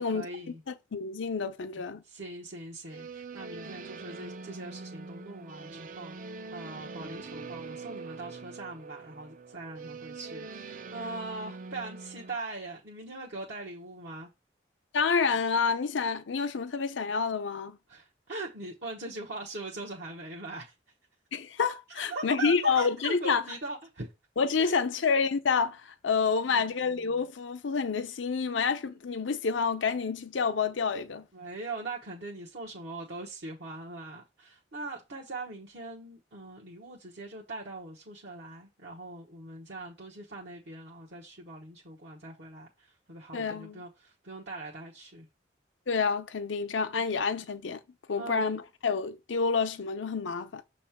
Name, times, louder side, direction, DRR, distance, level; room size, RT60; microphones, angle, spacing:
voice 1, 0.0-0.6 2.0-14.3 17.9-20.7 21.9-24.1 24.6-24.8 26.4-27.0 31.3-45.3 47.2-47.5 48.2-48.4, right 2 dB, 65° right, 1.1 m, -41 dB
voice 2, 0.7-2.0 14.9-17.8 21.3-23.4 24.4-31.2 43.3-43.8 45.9-47.8 48.1-50.6, left 5 dB, 85° left, 0.6 m, -28 dB
sound 1, 2.9-12.4, right 4 dB, 45° right, 0.4 m, -43 dB
6.5 x 3.1 x 5.8 m
head